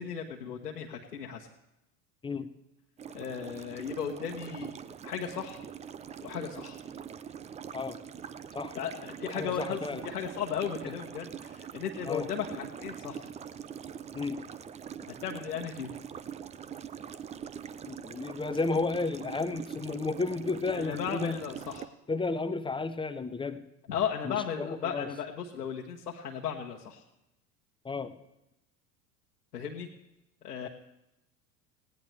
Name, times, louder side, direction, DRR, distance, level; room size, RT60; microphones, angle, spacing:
voice 1, 0.0-1.5 3.1-4.7 5.0-5.7 6.2-6.8 8.7-13.3 15.2-15.9 20.7-21.9 23.9-27.0 29.5-29.9 30.4-30.7, left 7 dB, 85° left, -1 dB, 1.3 m, -36 dB
sound 1, 3.0-21.9, right 8 dB, 15° right, 0.4 m, -43 dB
voice 2, 9.3-10.0 12.0-12.3 14.1-14.4 17.8-21.4 22.1-23.6 24.2-25.1 27.8-28.2, left 3 dB, 10° left, 11 dB, 0.8 m, -32 dB
19.0 x 17.0 x 3.3 m, 0.88 s
figure-of-eight pair, 80°, 47 cm